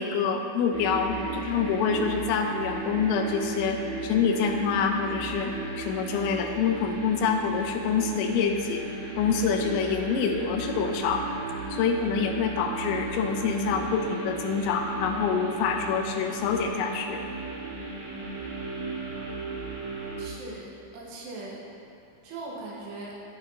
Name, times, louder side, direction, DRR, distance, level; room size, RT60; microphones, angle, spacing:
voice 1, 0.0-8.8 9.2-11.2 11.7-17.2, left 6 dB, 85° left, 4 dB, 2.8 m, -26 dB
sound 1, 0.7-20.2, right 4 dB, 65° right, 3.7 m, -36 dB
voice 2, 20.2-21.6 22.2-23.1, right 3 dB, 80° right, -3 dB, 3.0 m, -40 dB
13.0 x 5.7 x 2.6 m, 2.8 s
omnidirectional pair, 5.2 m